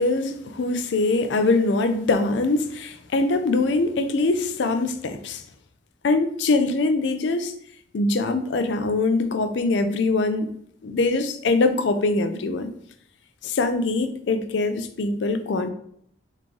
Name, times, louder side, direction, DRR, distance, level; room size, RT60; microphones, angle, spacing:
voice 1, 0.0-5.4 6.0-7.5 7.9-10.5 10.8-12.7 13.4-15.7, left 3 dB, 70° left, 9 dB, 0.4 m, -23 dB
3.6 x 3.1 x 3.7 m, 0.70 s
head